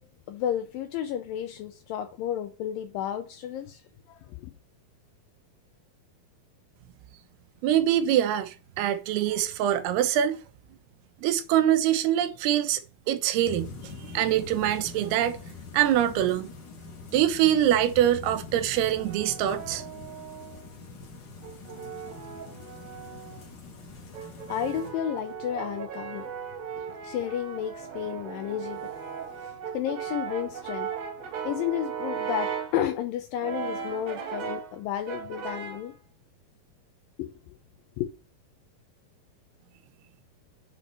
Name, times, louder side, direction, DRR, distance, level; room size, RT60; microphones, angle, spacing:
voice 1, 0.3-3.8 4.1-4.5 24.5-26.3 26.8-28.9 29.3-30.9 31.5-35.9 37.2-37.3 38.0-38.1, left 10 dB, 80° left, 2.0 m, -32 dB
voice 2, 7.6-10.4 11.2-12.8 13.1-15.4 15.7-16.5 17.1-19.8, right 11 dB, 85° right, 2.8 m, -24 dB
sound 1, 13.4-24.9, left 4 dB, 60° left, 1.1 m, -44 dB
Brass instrument, 18.7-20.7 21.4-23.5 24.1-32.8 33.4-34.8 35.1-35.9, right 7 dB, 60° right, 2.1 m, -37 dB
6.9 x 4.2 x 6.5 m
omnidirectional pair, 4.6 m